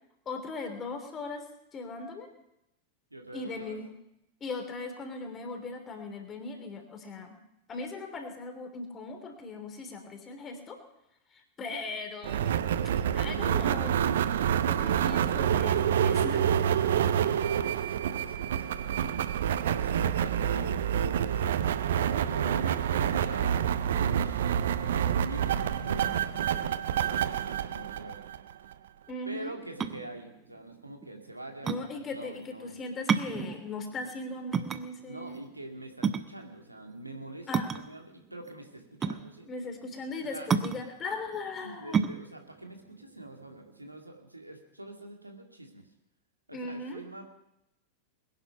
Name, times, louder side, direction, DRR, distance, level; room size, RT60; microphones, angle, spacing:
voice 1, 0.2-1.4 1.7-2.3 3.3-3.9 4.4-7.4 7.7-10.8 11.3-12.6 13.1-14.0 14.7-16.4 22.7-22.8 29.1-29.5 31.6-35.4 37.5-37.7 39.5-42.0 46.5-47.0, left 3 dB, 25° left, 5 dB, 3.1 m, -38 dB
voice 2, 3.1-3.8 15.7-19.3 19.7-21.7 22.3-23.6 23.9-28.2 29.3-32.8 35.1-39.5 40.3-40.5 41.6-45.9 46.5-47.2, right 1 dB, 85° right, 3 dB, 2.2 m, -44 dB
sound 1, 12.2-28.7, right 9 dB, 60° right, 0.7 m, -27 dB
sound 2, 29.6-44.0, right 6 dB, 25° right, 0.8 m, -32 dB
21.5 x 10.5 x 5.8 m, 0.84 s
figure-of-eight pair, 90°, 0 cm